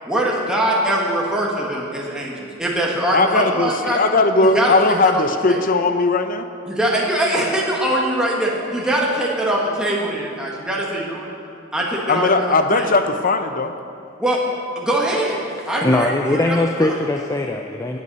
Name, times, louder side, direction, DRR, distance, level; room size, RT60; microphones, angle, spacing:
voice 1, 0.1-4.0 4.5-5.6 6.7-11.3 11.7-12.9 14.2-14.4 14.7-15.4 15.6-16.9, right 1 dB, 5° right, -4 dB, 1.7 m, -22 dB
voice 2, 3.1-6.5 12.1-13.7, left 3 dB, 45° left, 8 dB, 0.8 m, -18 dB
voice 3, 15.8-18.0, left 2 dB, 15° left, 3 dB, 0.5 m, -20 dB
17.5 x 8.4 x 5.5 m, 2.7 s
head